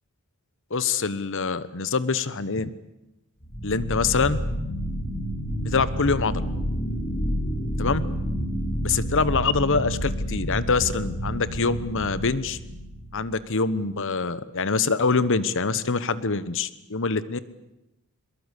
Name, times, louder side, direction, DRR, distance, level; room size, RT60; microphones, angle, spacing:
voice 1, 0.7-2.7 3.6-4.4 5.6-6.4 7.8-8.0 8.8-12.6 13.1-17.4, left 4 dB, 60° left, 16 dB, 1.2 m, -25 dB
sound 1, 3.4-13.2, equal, 30° left, 3.9 m, -29 dB
22.5 x 22.0 x 8.4 m, 0.94 s
head